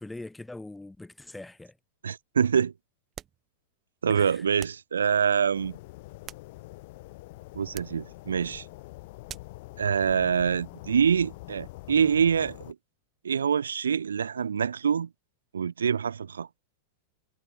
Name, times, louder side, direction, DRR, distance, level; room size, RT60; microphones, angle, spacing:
voice 1, 0.0-1.7 4.1-4.4, left 2 dB, 5° left, 6.3 m, -42 dB
voice 2, 2.0-2.7 4.0-5.8 7.5-8.6 9.8-12.8 13.2-15.1 15.5-16.5, right 7 dB, 70° right, 0.4 m, -25 dB
sound 1, 3.1-3.5 4.6-4.9 6.0-6.9 7.7-8.0 9.3-9.6, right 10 dB, 25° right, 1.9 m, -45 dB
sound 2, 5.5-12.7, left 21 dB, 50° left, 1.9 m, -45 dB
figure-of-eight pair, 90°, 0 cm